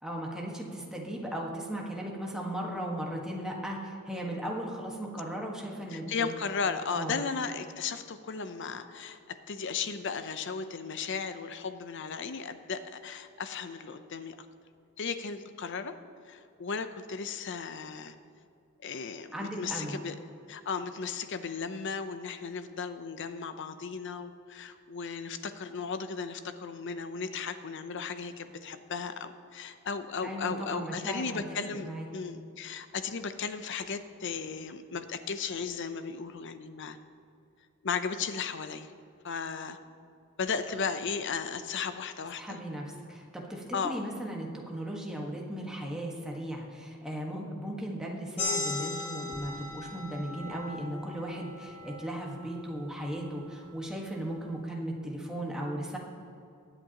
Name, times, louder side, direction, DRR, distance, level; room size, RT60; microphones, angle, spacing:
voice 1, 0.0-6.3 6.9-7.2 19.3-20.0 30.2-32.1 42.4-56.0, right 1 dB, 5° right, -2 dB, 1.4 m, -37 dB
voice 2, 5.9-9.2 9.5-14.3 15.0-15.9 16.3-18.2 18.8-20.1 20.5-37.0 37.8-38.9 39.2-39.8 40.4-42.6 43.7-44.0, left 5 dB, 55° left, 10 dB, 0.6 m, -35 dB
sound 1, 48.4-53.5, left 3 dB, 90° left, 1.8 m, -38 dB
21.5 x 8.1 x 2.9 m, 2.5 s
head